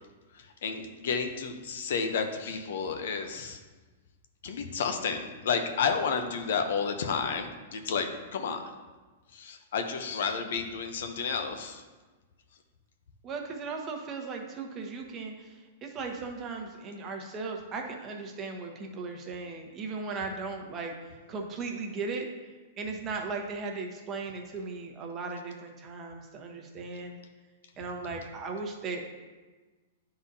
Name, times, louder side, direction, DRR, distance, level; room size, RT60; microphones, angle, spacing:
voice 1, 0.3-3.6 4.4-8.6 9.3-11.8, left 5 dB, 70° left, 6 dB, 0.7 m, -31 dB
voice 2, 13.2-22.3 22.8-27.2 27.8-29.0, right 4 dB, 30° right, 2 dB, 1.0 m, -37 dB
9.5 x 3.9 x 2.7 m, 1.3 s
hypercardioid pair, 130°, 0 cm